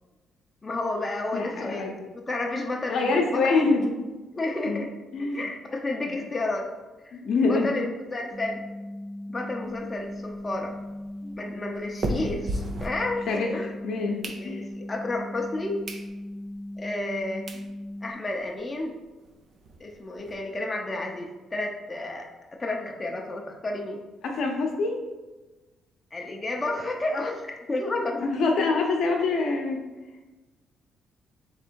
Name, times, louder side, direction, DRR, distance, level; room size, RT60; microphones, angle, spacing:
voice 1, 0.6-3.7 4.3-4.9 5.3-6.7 7.0-7.2 7.5-8.6 9.3-10.7 11.4-13.7 14.3-15.8 16.8-17.5 18.0-19.0 19.8-22.2 22.6-24.0 26.1-28.2, left 2 dB, 25° left, 0 dB, 0.6 m, -31 dB
voice 2, 1.3-1.9 2.9-3.9 4.7-4.8 5.1-5.5 7.1-7.7 11.2-11.3 13.3-13.5 13.8-14.2 14.4-14.7 24.2-25.0 28.2-29.8, left 3 dB, 70° left, 1 dB, 0.7 m, -25 dB
sound 1, 8.3-18.1, left 1 dB, 15° right, 0.9 m, -38 dB
sound 2, 9.6-13.6 14.0-14.9 15.4-15.5 15.8-16.1 16.5-16.6 17.2-17.3 17.5-17.7 18.1-18.2 18.4-18.5 18.8-18.9 19.2-20.3, right 1 dB, 45° right, 0.6 m, -36 dB
3.5 x 3.3 x 4.5 m, 1.2 s
cardioid pair, 90°, 0 cm